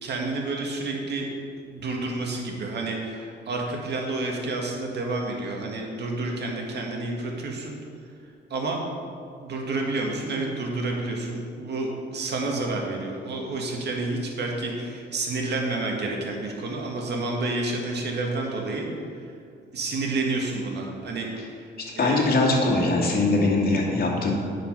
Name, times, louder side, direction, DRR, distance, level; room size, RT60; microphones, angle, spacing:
voice 1, 0.0-1.3 1.7-7.7 8.5-8.8 9.4-18.9 19.2-19.3 19.7-22.3, right 2 dB, 60° right, 0 dB, 2.0 m, -29 dB
voice 2, 21.8-24.3, left 2 dB, 50° left, -2 dB, 2.4 m, -22 dB
9.6 x 6.5 x 5.5 m, 2.3 s
cardioid pair, 90°, 20 cm